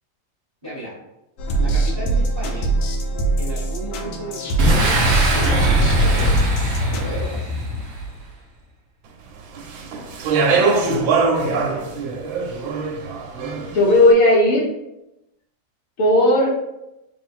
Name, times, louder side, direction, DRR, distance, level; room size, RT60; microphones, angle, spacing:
voice 1, 0.6-1.0 1.6-2.8 3.4-6.4 6.9-7.5, right 1 dB, 20° right, -6 dB, 0.9 m, -33 dB
sound 1, 1.4-7.1, right 2 dB, 75° left, 1.3 m, -22 dB
Boom, 4.6-8.2, right 1 dB, 65° right, 0.6 m, -20 dB
Speech, 9.5-13.9, right 4 dB, 85° right, 1.4 m, -22 dB
voice 2, 10.8-11.8 13.7-14.7 16.0-16.5, left 1 dB, 60° left, -4 dB, 0.9 m, -17 dB
3.4 x 2.4 x 4.3 m, 0.91 s
omnidirectional pair, 2.1 m